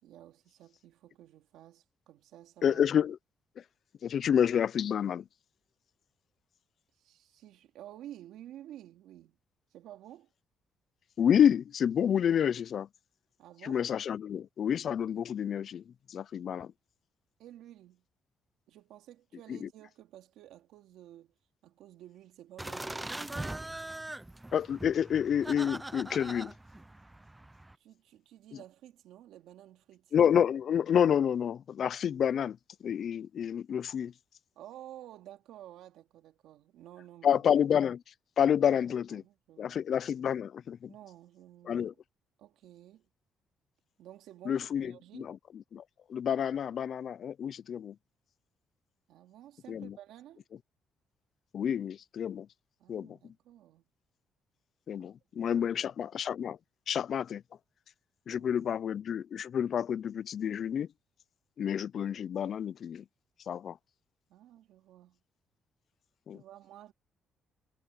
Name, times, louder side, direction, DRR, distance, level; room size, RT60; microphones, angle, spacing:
voice 1, 0.0-2.8 7.0-9.4 9.7-10.3 13.4-13.8 17.4-18.0 18.7-21.3 21.6-23.6 27.8-30.1 34.6-37.4 38.6-39.8 40.9-42.0 42.4-43.1 44.0-45.4 49.1-50.4 52.8-53.8 55.0-55.8 58.3-58.8 64.3-65.2 66.3-66.9, right 12 dB, 85° right, 2.8 m, -52 dB
voice 2, 2.6-3.2 3.6-3.7 4.0-5.3 11.2-12.9 13.6-16.7 19.5-19.7 24.5-26.5 30.1-34.1 37.2-38.0 38.4-39.2 39.6-40.9 41.7-41.9 44.5-45.8 46.1-48.0 49.7-50.0 51.5-52.5 52.9-53.3 54.9-56.6 56.9-57.4 58.3-60.9 61.6-63.0 63.5-63.8 66.3-66.4, left 8 dB, 55° left, 0.3 m, -29 dB
sound 1, 22.6-27.7, right 1 dB, 10° right, 0.5 m, -41 dB
cardioid pair, 105°, 0 cm